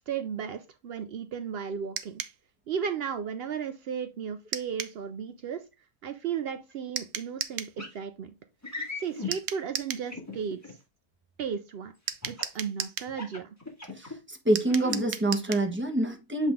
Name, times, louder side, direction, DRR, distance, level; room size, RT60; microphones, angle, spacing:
voice 1, 0.1-2.2 2.7-5.6 6.0-8.3 9.0-10.8 11.4-11.9 12.3-13.5, right 7 dB, 85° right, 0.5 m, -35 dB
sound 1, 2.0-2.4 4.5-5.0 7.0-7.8 9.3-10.1 12.1-13.1 14.6-15.7, right 9 dB, 65° right, 0.9 m, -35 dB
sound 2, 7.8-8.0 8.6-9.3 10.1-10.7 12.2-12.6 13.1-14.1 14.6-15.0, left 4 dB, 10° left, 1.6 m, -37 dB
voice 2, 14.0-16.5, right 1 dB, 10° right, 1.0 m, -26 dB
7.6 x 3.5 x 3.5 m
omnidirectional pair, 1.7 m